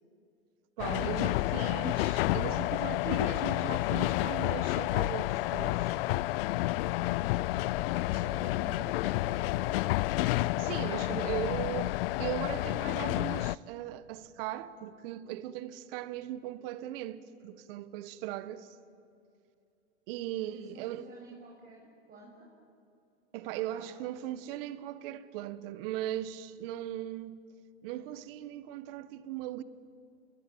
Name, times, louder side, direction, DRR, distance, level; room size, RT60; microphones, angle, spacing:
sound 1, 0.8-13.6, left 18 dB, 55° left, 0.6 m, -30 dB
voice 1, 0.8-6.0 8.1-8.2 10.6-18.8 20.1-21.1 23.3-27.4 27.8-29.6, right 13 dB, 50° right, 1.6 m, -38 dB
voice 2, 7.7-10.0 20.4-22.5 23.6-23.9, right 1 dB, 25° right, 6.7 m, -50 dB
29.0 x 21.5 x 8.8 m
hypercardioid pair, 115°, 35 cm